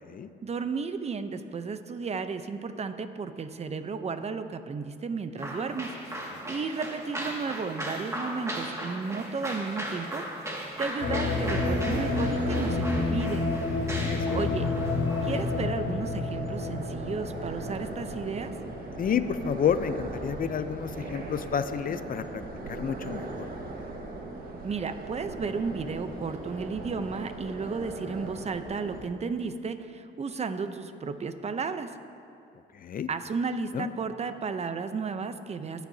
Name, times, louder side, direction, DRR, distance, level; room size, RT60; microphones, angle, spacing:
voice 1, 0.4-5.9 6.5-13.4 14.3-14.7 15.2-18.5 24.6-31.9 33.1-35.9, right 5 dB, 35° right, 10 dB, 0.7 m, -33 dB
sound 1, 5.4-15.6, right 1 dB, 15° right, 2.1 m, -37 dB
sound 2, 10.8-29.0, right 2 dB, 50° right, 1.6 m, -39 dB
sound 3, 11.0-19.2, left 3 dB, 65° left, 1.3 m, -30 dB
voice 2, 13.8-14.4 19.0-22.4 22.7-23.5 32.8-33.1 33.7-33.9, left 7 dB, 45° left, 11 dB, 0.6 m, -30 dB
20.5 x 9.2 x 2.8 m, 2.5 s
cardioid pair, 90°, 20 cm